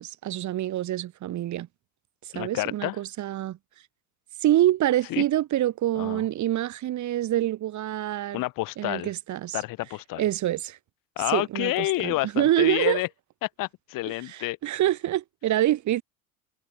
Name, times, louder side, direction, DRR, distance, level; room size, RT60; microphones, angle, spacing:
voice 1, 0.0-1.7 2.2-3.6 4.4-8.4 8.8-9.6 10.2-10.8 11.3-13.0 14.3-16.0, right 13 dB, 40° right, 5.4 m, -26 dB
voice 2, 2.3-3.0 5.1-5.2 6.0-6.2 8.3-9.1 9.5-10.2 11.2-13.1 13.4-14.6, left 19 dB, 50° left, 5.1 m, -29 dB
figure-of-eight pair, 70°, 42 cm